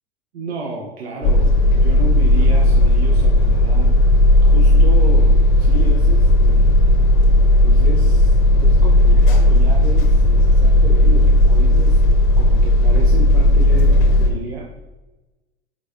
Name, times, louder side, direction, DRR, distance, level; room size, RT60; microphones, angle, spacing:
voice 1, 0.3-4.0 4.4-6.8 7.6-12.0 12.4-14.7, right 2 dB, 65° right, 0 dB, 0.6 m, -31 dB
sound 1, 1.2-14.3, left 1 dB, 50° left, 0.8 m, -13 dB
4.9 x 3.5 x 2.3 m, 1.1 s
figure-of-eight pair, 80°, 33 cm